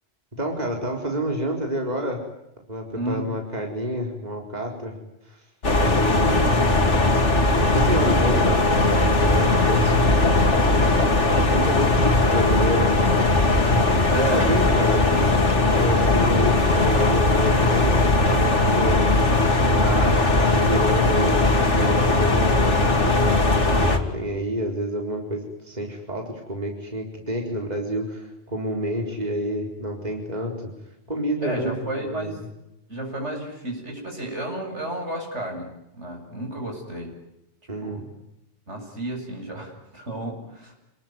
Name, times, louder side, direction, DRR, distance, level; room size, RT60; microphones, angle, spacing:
voice 1, 0.4-2.2 2.7-5.0 5.3-5.4 5.8-6.6 7.7-9.9 11.5-12.9 13.2-13.3 14.1-15.1 15.6-18.1 18.3-19.0 19.8-30.5 31.1-32.4 37.7-38.0, equal, 35° right, 1 dB, 4.5 m, -29 dB
sound 1, 5.6-24.0, left 2 dB, 80° left, 3.2 m, -19 dB
voice 2, 14.1-15.0 15.6-15.9 31.4-32.4 32.9-37.2 37.8-38.0 38.7-40.8, right 1 dB, 75° right, 3 dB, 8.3 m, -32 dB
29.0 x 20.5 x 9.5 m, 0.89 s
omnidirectional pair, 1.2 m